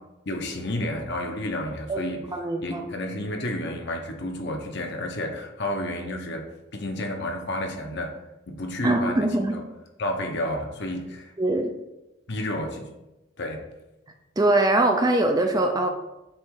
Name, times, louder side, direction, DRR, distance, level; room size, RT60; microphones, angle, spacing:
voice 1, 0.3-2.3 2.6-6.4 6.7-8.1 8.5-9.6 10.0-11.3 12.3-12.9 13.4-13.6, left 1 dB, 55° left, 3 dB, 1.0 m, -31 dB
voice 2, 2.3-2.8 8.8-9.6 11.4-11.7 14.4-15.9, right 2 dB, 20° right, 4 dB, 0.5 m, -22 dB
7.5 x 3.2 x 4.8 m, 0.96 s
head